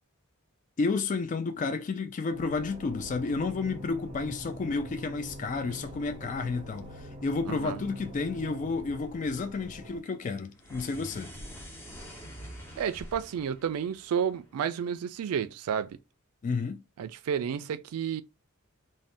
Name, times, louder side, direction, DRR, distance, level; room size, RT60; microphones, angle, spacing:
voice 1, 0.8-11.3 16.4-16.8, left 4 dB, 35° left, 0.3 m, -31 dB
sound 1, 2.3-10.0, right 1 dB, 35° right, 0.7 m, -44 dB
voice 2, 7.5-7.8 12.8-16.0 17.0-18.2, right 8 dB, 80° right, 0.3 m, -31 dB
sound 2, 10.5-15.0, equal, 10° left, 0.7 m, -46 dB
2.6 x 2.1 x 3.3 m
head